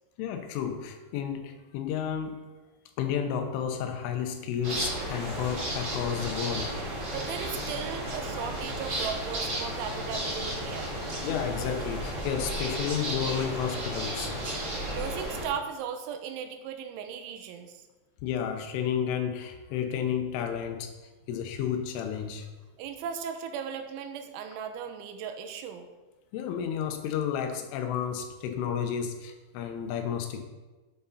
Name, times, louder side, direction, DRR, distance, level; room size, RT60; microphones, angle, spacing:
voice 1, 0.2-2.4 3.0-6.7 11.2-14.4 18.2-20.9 21.3-22.5 26.3-30.4, left 8 dB, 90° left, 6 dB, 3.6 m, -31 dB
sound 1, 4.6-15.5, right 1 dB, 35° right, 1.5 m, -33 dB
voice 2, 7.1-10.9 14.9-17.8 22.8-25.9, right 7 dB, 80° right, 6 dB, 3.2 m, -37 dB
12.5 x 9.4 x 4.2 m, 1.2 s
omnidirectional pair, 5.6 m